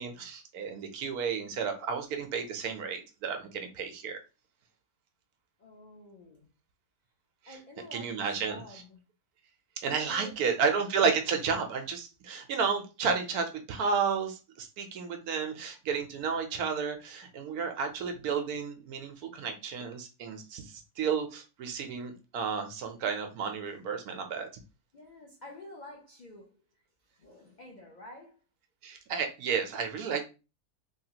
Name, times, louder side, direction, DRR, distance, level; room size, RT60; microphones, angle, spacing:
voice 1, 0.0-4.2 7.5-7.6 7.9-8.6 9.8-24.5 28.8-30.2, right 6 dB, 70° right, 1.1 m, -32 dB
voice 2, 5.6-6.5 7.5-9.0 10.1-10.7 24.9-26.6 27.2-28.4, left 1 dB, 80° left, 0.4 m, -49 dB
3.3 x 2.4 x 2.8 m
omnidirectional pair, 1.7 m